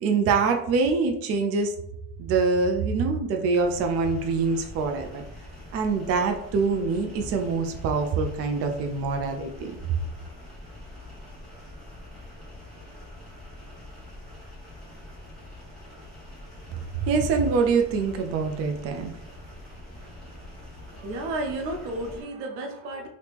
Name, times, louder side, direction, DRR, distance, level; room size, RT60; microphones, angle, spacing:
voice 1, 0.0-1.7 2.2-5.2 5.7-9.8 17.0-19.1, right 4 dB, 40° right, 5 dB, 0.5 m, -24 dB
sound 1, 3.5-22.2, left 1 dB, ahead, 1.3 m, -44 dB
voice 2, 20.9-23.1, right 2 dB, 85° right, 3 dB, 0.9 m, -32 dB
2.9 x 2.8 x 3.4 m, 0.73 s
cardioid pair, 130°, 36 cm